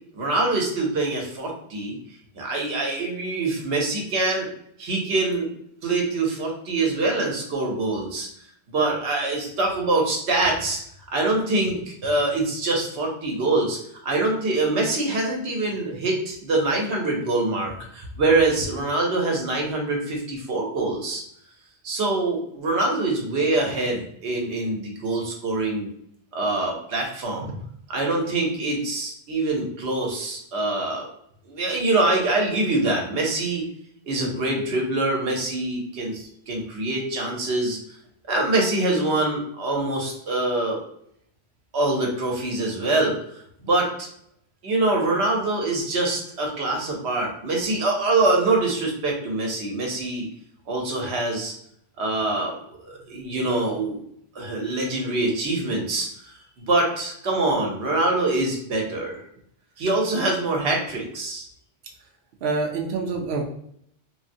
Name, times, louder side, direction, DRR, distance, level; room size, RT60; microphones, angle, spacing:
voice 1, 0.1-2.0 2.3-4.5 4.8-5.5 5.8-8.3 8.7-10.8 11.1-13.8 14.0-21.2 21.8-25.9 26.3-27.5 27.9-31.1 31.5-33.6 34.0-37.8 38.3-40.8 41.7-43.2 43.6-44.1 44.6-50.3 50.7-51.5 52.0-52.5 52.8-54.1 54.3-56.3 56.7-59.2 59.8-61.5, right 2 dB, 80° right, 0 dB, 1.1 m, -24 dB
voice 2, 62.4-63.4, right 4 dB, 65° right, 1 dB, 0.7 m, -27 dB
3.5 x 2.1 x 2.6 m, 0.69 s
omnidirectional pair, 1.1 m